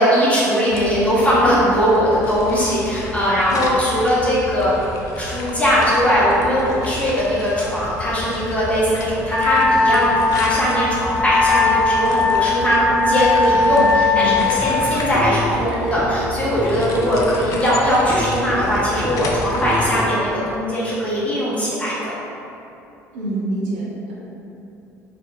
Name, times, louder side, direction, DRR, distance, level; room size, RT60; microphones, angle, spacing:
voice 1, 0.0-4.8 5.2-22.1, equal, 15° left, -8 dB, 1.1 m, -19 dB
sound 1, 0.7-19.9, left 3 dB, 40° left, 0.4 m, -32 dB
Wind instrument woodwind instrument, 9.3-14.9, left 4 dB, 70° left, 1.0 m, -19 dB
voice 2, 13.7-14.5 23.1-24.1, right 2 dB, 65° right, -7 dB, 0.7 m, -27 dB
Laughter / Drum, 14.6-20.5, left 1 dB, 10° right, 0.5 m, -28 dB
2.7 x 2.5 x 3.6 m, 2.8 s
figure-of-eight pair, 60°, 9 cm